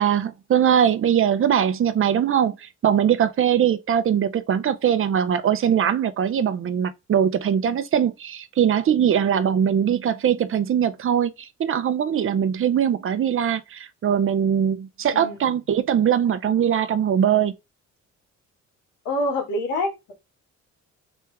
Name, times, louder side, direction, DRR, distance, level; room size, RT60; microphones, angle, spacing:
voice 1, 0.0-17.5, right 9 dB, 45° right, 0.6 m, -21 dB
voice 2, 15.1-15.5 19.0-20.1, left 1 dB, 85° left, 1.7 m, -26 dB
3.5 x 3.3 x 3.2 m
cardioid pair, 90°, 30 cm